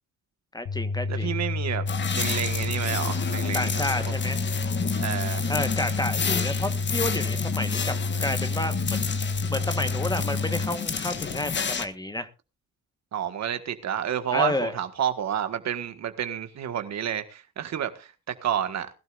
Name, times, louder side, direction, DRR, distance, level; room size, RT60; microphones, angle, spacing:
voice 1, 0.5-1.4 3.5-4.4 5.5-7.9 8.2-9.1 9.5-12.3 14.3-14.7, left 1 dB, 15° left, 1.3 m, -30 dB
sound 1, 0.7-10.7, left 3 dB, 65° left, 1.7 m, -29 dB
voice 2, 1.1-1.8 2.1-3.8 5.0-5.5 13.1-18.9, right 9 dB, 60° right, 1.6 m, -30 dB
sound 2, 1.9-11.8, left 6 dB, 35° left, 1.4 m, -31 dB
20.5 x 12.0 x 2.5 m
cardioid pair, 90°, 30 cm